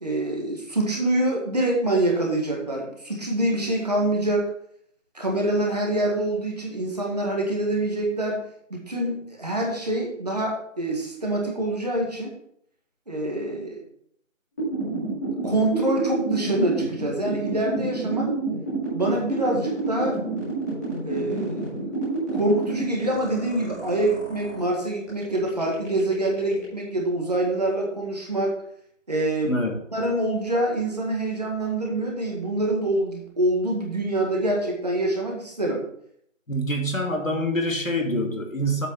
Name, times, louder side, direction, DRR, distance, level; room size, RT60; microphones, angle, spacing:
voice 1, 0.0-4.5 5.1-8.4 8.7-12.3 13.1-13.8 14.9-15.0 15.4-18.3 18.9-20.2 21.0-22.0 22.3-28.6 29.1-29.6 29.9-35.9, right 1 dB, 30° right, -1 dB, 1.9 m, -25 dB
sound 1, 14.6-24.7 25.1-26.8, right 2 dB, 15° left, 2.5 m, -29 dB
voice 2, 29.4-29.8 36.5-38.9, equal, 80° left, 2 dB, 2.6 m, -25 dB
7.8 x 6.1 x 5.6 m, 0.68 s
figure-of-eight pair, 170°, 39 cm